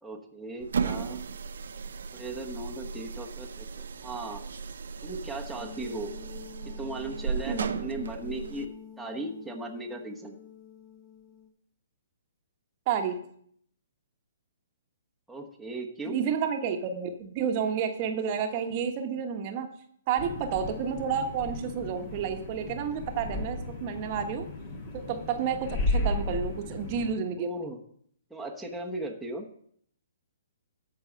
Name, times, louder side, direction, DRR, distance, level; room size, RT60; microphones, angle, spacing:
voice 1, 0.0-1.2 2.1-4.4 5.0-6.1 6.8-8.7 9.0-10.4 15.3-16.2 27.4-27.8 28.3-29.5, right 2 dB, ahead, -3 dB, 1.1 m, -37 dB
sound 1, 0.6-8.7, right 5 dB, 70° right, 0.7 m, -36 dB
sound 2, 5.6-11.5, left 8 dB, 20° left, 1.4 m, -48 dB
voice 2, 7.5-7.8 12.9-13.2 16.1-19.7 20.1-24.5 24.9-27.7, right 7 dB, 40° right, 5 dB, 1.1 m, -30 dB
sound 3, 20.2-27.1, left 2 dB, 40° left, 2.0 m, -34 dB
13.0 x 4.6 x 5.2 m, 0.64 s
hypercardioid pair, 135°, 0 cm